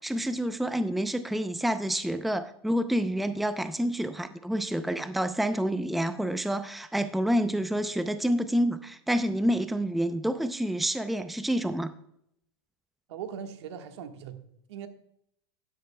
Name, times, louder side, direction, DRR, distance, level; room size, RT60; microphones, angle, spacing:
voice 1, 0.0-11.9, equal, ahead, 10 dB, 0.5 m, -28 dB
voice 2, 13.1-14.4 14.7-14.9, right 8 dB, 75° right, 6 dB, 1.5 m, -39 dB
12.5 x 11.0 x 2.2 m, 0.71 s
supercardioid pair, 130°, 14 cm